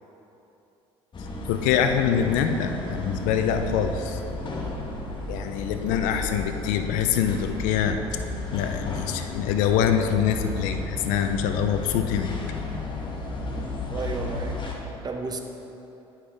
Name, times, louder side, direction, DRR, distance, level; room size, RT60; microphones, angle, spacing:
sound 1, 1.1-14.7, left 2 dB, 40° left, 1.2 m, -33 dB
voice 1, 1.5-4.2 5.3-8.0 8.5-12.5, left 8 dB, 80° left, 7 dB, 0.5 m, -25 dB
voice 2, 13.9-15.4, right 3 dB, 30° right, 5 dB, 0.8 m, -33 dB
10.5 x 5.7 x 3.4 m, 2.9 s
supercardioid pair, 75°, 13 cm